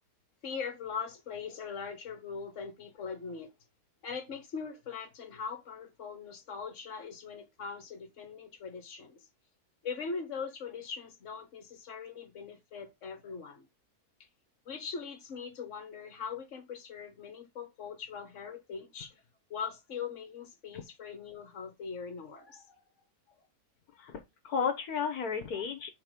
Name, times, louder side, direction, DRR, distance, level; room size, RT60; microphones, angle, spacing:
voice 1, 0.4-3.5 4.0-9.2 9.8-13.7 14.6-19.2 19.5-22.8 25.5-25.6, left 6 dB, 55° left, 1.6 m, -41 dB
voice 2, 24.0-25.9, left 6 dB, 75° left, 1.5 m, -33 dB
5.9 x 4.1 x 5.1 m
omnidirectional pair, 1.6 m